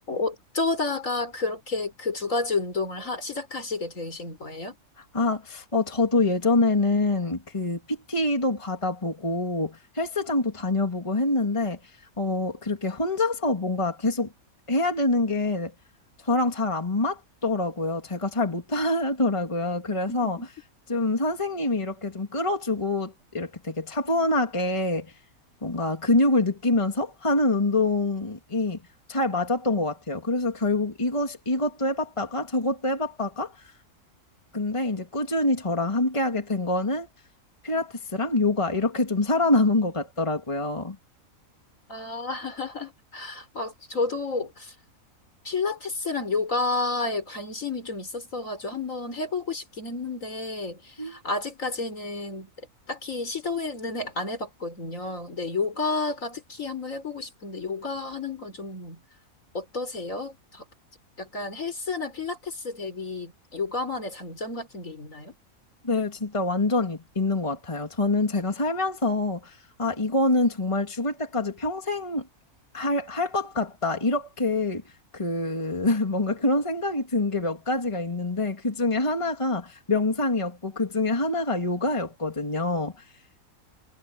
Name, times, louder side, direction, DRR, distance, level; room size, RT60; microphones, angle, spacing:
voice 1, 0.1-4.8 20.1-20.5 41.9-44.7 45.4-52.5 52.9-59.0 59.5-60.6 61.2-65.3, left 3 dB, 60° left, 4.7 m, -31 dB
voice 2, 5.1-11.8 12.2-14.3 14.7-15.7 16.2-20.4 20.9-25.1 25.6-28.8 29.1-33.7 34.5-37.1 37.6-41.0 51.0-51.2 65.8-72.3 72.7-74.8 75.1-82.9, left 2 dB, 20° left, 2.4 m, -25 dB
omnidirectional pair, 1.5 m